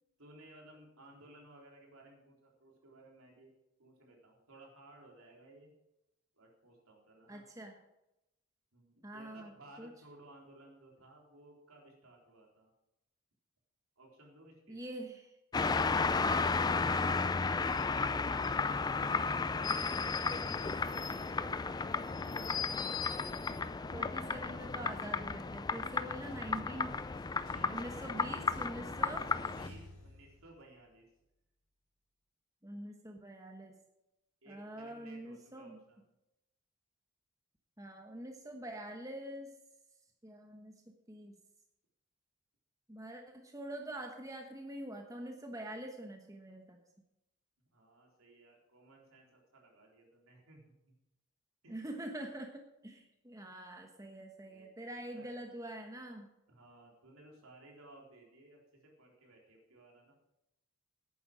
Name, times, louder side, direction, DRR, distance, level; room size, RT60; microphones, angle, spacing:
voice 1, 0.2-3.5 3.8-5.7 6.4-7.4 8.7-12.7 14.0-14.8 26.2-26.6 27.4-28.4 29.6-31.1 34.4-36.1 47.7-50.9 51.6-51.8 54.5-54.7 54.9-55.3 56.5-60.1, right 2 dB, 85° right, -1 dB, 3.9 m, -59 dB
voice 2, 7.3-7.8 9.0-9.5 9.8-9.9 14.7-15.3 16.2-16.9 23.9-26.9 27.7-29.3 32.6-33.7 34.5-35.8 37.8-39.5 40.2-41.3 42.9-46.8 51.7-56.3, right 1 dB, 15° right, 3 dB, 1.1 m, -45 dB
sound 1, 15.5-29.7, left 4 dB, 20° left, 0.3 m, -33 dB
sound 2, 26.3-30.8, left 1 dB, 70° left, 4.0 m, -53 dB
11.0 x 8.8 x 6.2 m, 0.89 s
head